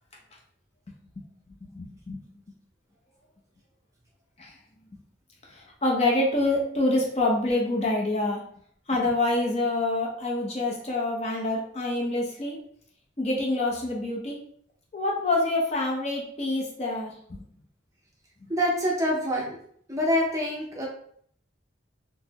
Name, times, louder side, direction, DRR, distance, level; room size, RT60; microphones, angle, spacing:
voice 1, 1.7-2.2 4.4-4.5 5.5-8.4 8.9-12.6 13.2-14.4 14.9-17.4, left 2 dB, 35° left, -2 dB, 0.6 m, -26 dB
voice 2, 18.5-19.6 19.9-20.9, equal, 15° right, -3 dB, 0.7 m, -25 dB
4.1 x 2.1 x 2.8 m, 0.62 s
head